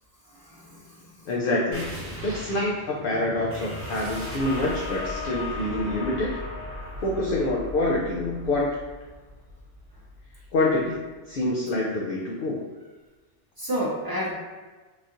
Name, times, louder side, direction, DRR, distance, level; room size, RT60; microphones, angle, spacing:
voice 1, 0.2-1.3 6.8-6.9 9.9-10.0 13.6-14.3, equal, 30° right, -6 dB, 0.5 m, -32 dB
voice 2, 1.3-1.9 2.2-6.3 7.0-8.7 10.5-12.6, left 2 dB, 60° left, -3 dB, 0.6 m, -26 dB
sound 1, 1.7-10.9, left 2 dB, 10° right, 0.9 m, -37 dB
3.8 x 3.0 x 2.6 m, 1.3 s
omnidirectional pair, 1.2 m